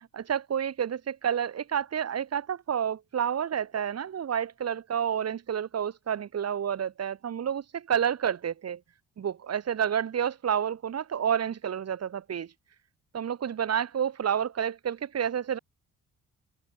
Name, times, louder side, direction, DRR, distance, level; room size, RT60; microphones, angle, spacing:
voice 1, 0.1-8.8 9.2-12.5 13.1-15.6, right 8 dB, 55° right, 5.5 m, -29 dB
open air
cardioid pair, 90°, 30 cm